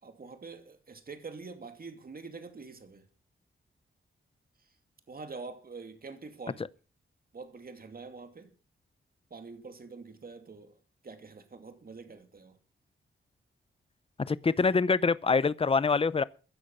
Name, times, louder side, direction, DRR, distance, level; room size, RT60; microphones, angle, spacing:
voice 1, 0.0-3.1 5.1-6.6 7.3-8.5 9.3-10.8 11.0-12.6, right 4 dB, 45° right, 2.6 m, -45 dB
voice 2, 14.3-16.2, left 4 dB, 25° left, 0.7 m, -25 dB
15.5 x 10.0 x 5.6 m
wide cardioid pair, 90°, 21 cm